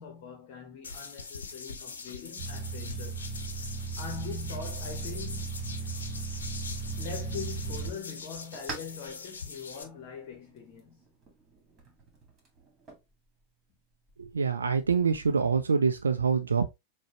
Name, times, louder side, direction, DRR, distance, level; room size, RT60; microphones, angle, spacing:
voice 1, 0.0-3.3 3.9-5.6 7.0-11.1, left 6 dB, 45° left, 0.9 m, -42 dB
sound 1, 0.8-9.8, left 4 dB, 70° left, 0.7 m, -42 dB
sound 2, 2.4-7.9, right 4 dB, 50° right, 0.9 m, -36 dB
sound 3, 6.5-15.3, right 3 dB, 25° right, 1.8 m, -50 dB
voice 2, 14.2-16.7, right 5 dB, 75° right, 0.4 m, -25 dB
6.3 x 2.2 x 2.9 m
figure-of-eight pair, 90°, 0 cm